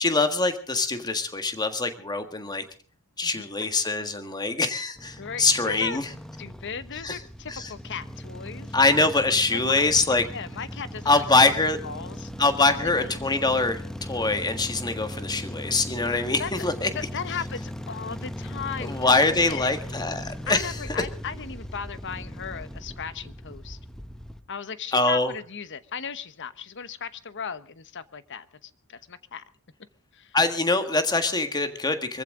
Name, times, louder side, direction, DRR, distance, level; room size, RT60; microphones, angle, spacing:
voice 1, 0.0-2.6 3.2-6.1 7.0-7.2 7.5-7.7 8.7-10.2 11.0-11.8 12.4-16.9 18.8-21.1 24.9-25.3 30.3-32.2, left 3 dB, 20° left, 1.6 m, -24 dB
sound 1, 5.0-24.4, equal, 5° left, 0.8 m, -38 dB
voice 2, 5.2-6.0 6.4-8.8 9.5-9.9 10.3-11.5 11.8-12.3 12.8-13.3 16.4-16.5 16.9-19.8 20.5-23.8 24.5-29.4 30.1-30.4, left 6 dB, 55° left, 1.0 m, -37 dB
24.0 x 15.0 x 3.8 m
head